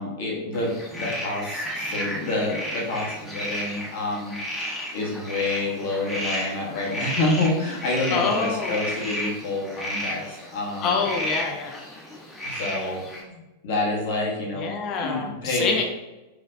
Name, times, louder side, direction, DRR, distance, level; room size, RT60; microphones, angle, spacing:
voice 1, 0.0-4.3 4.6-11.0 12.4-14.7 15.0-15.8, left 2 dB, 55° left, -2 dB, 1.3 m, -28 dB
sound 1, 0.5-13.2, equal, 10° left, 1.0 m, -33 dB
voice 2, 8.1-8.9 10.8-11.8 14.6-15.8, left 5 dB, 35° left, 2 dB, 0.6 m, -26 dB
4.8 x 3.1 x 2.6 m, 1.1 s
figure-of-eight pair, 90°, 0 cm